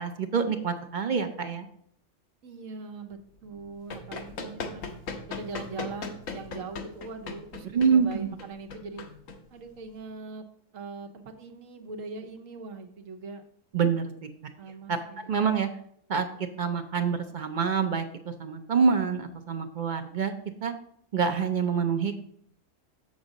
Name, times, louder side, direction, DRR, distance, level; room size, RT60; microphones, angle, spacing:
voice 1, 0.0-1.7 7.7-8.3 13.7-14.3 14.9-15.0 15.3-15.7 16.1-16.3 16.6-20.3 20.6-20.7 21.1-22.2, right 6 dB, 50° right, 8 dB, 0.6 m, -26 dB
voice 2, 2.4-4.9 5.3-9.1 9.5-10.4 10.7-13.4 14.6-15.4, right 4 dB, 85° right, 6 dB, 1.2 m, -41 dB
Run, 3.5-10.0, left 4 dB, 85° left, 1.3 m, -39 dB
7.1 x 6.3 x 3.8 m, 0.69 s
omnidirectional pair, 1.3 m